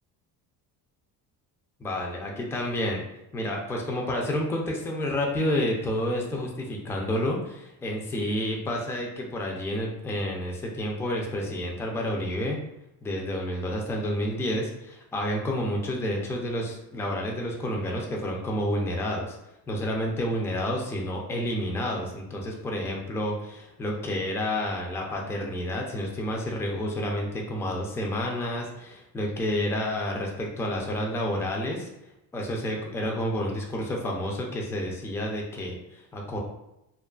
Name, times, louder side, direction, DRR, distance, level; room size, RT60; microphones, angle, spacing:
voice 1, 1.8-3.0 3.3-12.6 13.0-19.4 19.7-31.9 32.3-36.4, left 1 dB, 5° left, 0 dB, 0.3 m, -30 dB
2.4 x 2.3 x 2.2 m, 0.88 s
cardioid pair, 100°, 40 cm